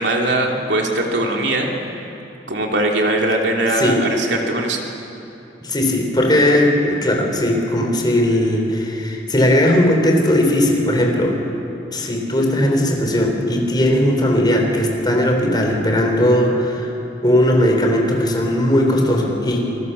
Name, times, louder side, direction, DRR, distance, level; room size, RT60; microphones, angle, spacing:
voice 1, 0.0-1.7 2.5-4.8, right 1 dB, 70° right, 0 dB, 3.1 m, -20 dB
voice 2, 5.6-11.4 11.9-16.9 17.2-19.7, left 1 dB, 25° left, 1 dB, 4.0 m, -17 dB
27.5 x 20.5 x 7.0 m, 2.9 s
head